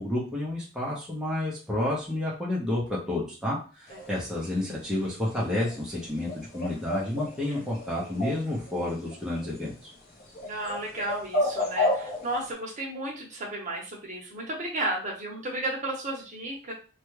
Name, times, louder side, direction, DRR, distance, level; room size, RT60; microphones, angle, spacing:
voice 1, 0.0-9.9, left 1 dB, 5° right, -6 dB, 0.6 m, -30 dB
sound 1, 3.9-12.5, left 1 dB, 45° left, 0.8 m, -33 dB
voice 2, 10.4-16.7, right 1 dB, 40° right, -1 dB, 0.9 m, -33 dB
3.3 x 2.2 x 3.1 m, 0.37 s
head